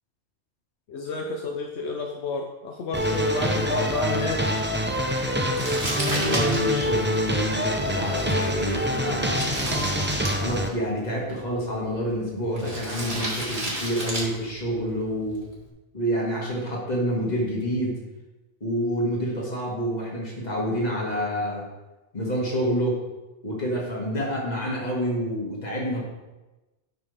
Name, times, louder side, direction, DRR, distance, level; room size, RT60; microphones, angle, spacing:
voice 1, 0.9-4.4, left 3 dB, 80° left, 1 dB, 1.0 m, -30 dB
sound 1, 2.9-10.7, equal, 15° right, 0.5 m, -25 dB
Crumpling crinkling, 5.5-15.7, right 1 dB, 45° right, 1.9 m, -35 dB
voice 2, 6.1-9.5 10.4-15.4 15.9-18.0 18.6-21.7 22.1-23.0 23.4-26.0, equal, 40° left, -3 dB, 2.1 m, -28 dB
10.0 x 5.6 x 3.4 m, 1.1 s
omnidirectional pair, 1.1 m